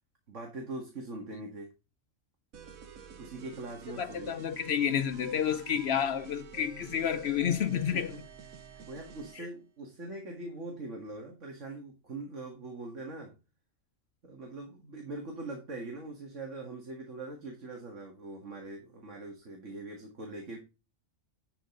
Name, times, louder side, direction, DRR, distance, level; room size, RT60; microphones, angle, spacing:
voice 1, 0.3-1.7 3.2-4.3 7.9-8.2 8.5-13.3 14.2-20.6, right 2 dB, 60° right, 2.3 m, -42 dB
sound 1, 2.5-9.5, right 6 dB, 90° right, 1.4 m, -49 dB
voice 2, 4.0-8.1 9.4-9.5, left 8 dB, 65° left, 0.7 m, -30 dB
11.5 x 5.3 x 3.8 m
omnidirectional pair, 1.4 m